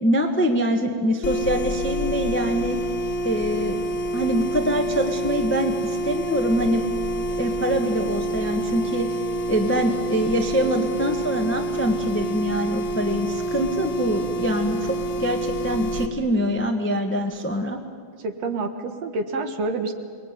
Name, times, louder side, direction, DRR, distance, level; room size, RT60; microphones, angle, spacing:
voice 1, 0.0-2.8 3.2-6.8 7.3-17.8, equal, 10° left, 4 dB, 0.6 m, -24 dB
sound 1, 1.2-16.1, right 1 dB, 45° left, 1.9 m, -27 dB
voice 2, 18.2-19.9, right 3 dB, 60° right, 6 dB, 2.5 m, -27 dB
29.0 x 22.0 x 9.2 m, 2.2 s
omnidirectional pair, 3.5 m